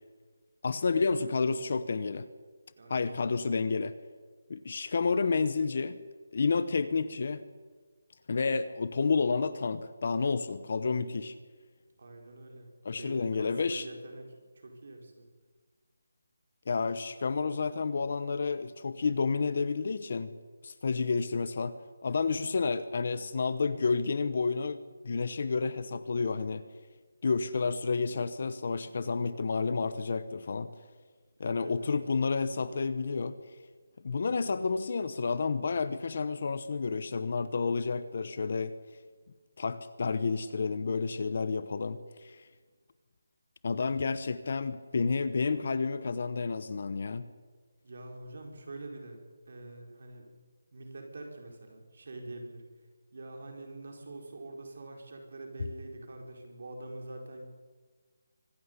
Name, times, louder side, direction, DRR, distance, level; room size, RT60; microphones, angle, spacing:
voice 1, 0.6-2.3 2.9-4.0 4.5-6.0 6.3-7.4 8.3-11.3 12.8-13.9 16.7-20.3 20.6-24.8 25.0-26.6 27.2-30.7 31.4-33.3 34.0-38.7 39.6-42.4 43.6-47.3, left 4 dB, 35° left, 15 dB, 0.8 m, -30 dB
voice 2, 2.7-3.1 12.0-14.3 14.6-15.3 31.4-32.0 47.8-50.3 50.7-52.6 53.1-57.5, right 2 dB, 45° right, 2 dB, 4.7 m, -45 dB
24.5 x 12.5 x 9.7 m, 1.4 s
hypercardioid pair, 180°, 0 cm